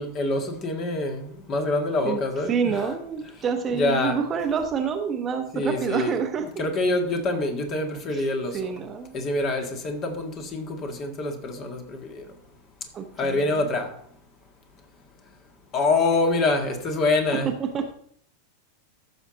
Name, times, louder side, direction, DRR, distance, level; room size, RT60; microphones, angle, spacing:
voice 1, 0.0-2.9 3.7-4.2 5.5-6.1 6.6-8.7 9.1-12.2 13.2-13.9 15.7-17.5, left 2 dB, 35° left, 1.9 m, -25 dB
voice 2, 2.5-6.6 8.1-8.3 8.5-9.2 12.9-13.6 17.3-17.9, right 6 dB, 25° right, 0.9 m, -28 dB
14.5 x 6.4 x 3.9 m
figure-of-eight pair, 90°, 0 cm